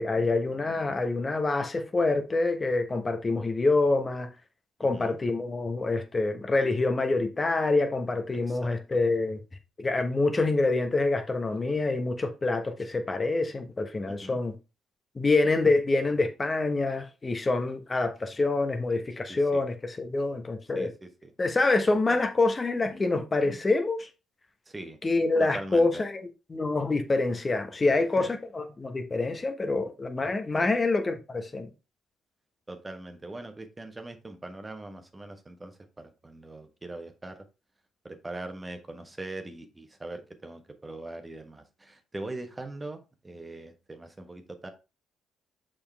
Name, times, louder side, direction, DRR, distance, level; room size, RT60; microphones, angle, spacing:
voice 1, 0.0-4.3 4.8-9.4 9.8-14.5 15.1-20.9 21.4-24.1 25.0-31.7, left 3 dB, 30° left, 1.2 m, -26 dB
voice 2, 14.1-14.4 19.3-19.6 20.7-21.3 22.1-22.2 24.7-25.0 25.4-25.9 28.2-28.3 30.6-30.9 32.7-37.4 38.0-44.7, right 2 dB, 20° right, 1.3 m, -41 dB
7.0 x 5.1 x 3.5 m
hypercardioid pair, 45°, 0 cm